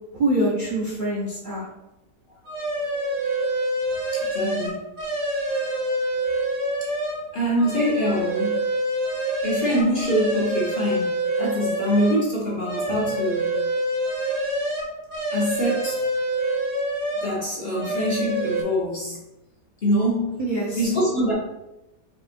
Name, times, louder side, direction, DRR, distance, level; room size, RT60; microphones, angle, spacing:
voice 1, 0.1-1.7 20.4-20.9, right 1 dB, 65° right, -4 dB, 0.4 m, -25 dB
sound 1, 2.4-7.2 7.6-12.2 12.6-17.4 17.7-18.6, right 1 dB, 85° right, 1.5 m, -26 dB
voice 2, 4.1-4.8 6.8-6.9 7.3-8.6 9.4-11.1 11.4-13.6 15.3-16.0 17.2-19.2 19.8-20.4 20.8-21.3, equal, 45° left, -5 dB, 0.8 m, -24 dB
5.3 x 3.0 x 2.5 m, 0.93 s
omnidirectional pair, 1.8 m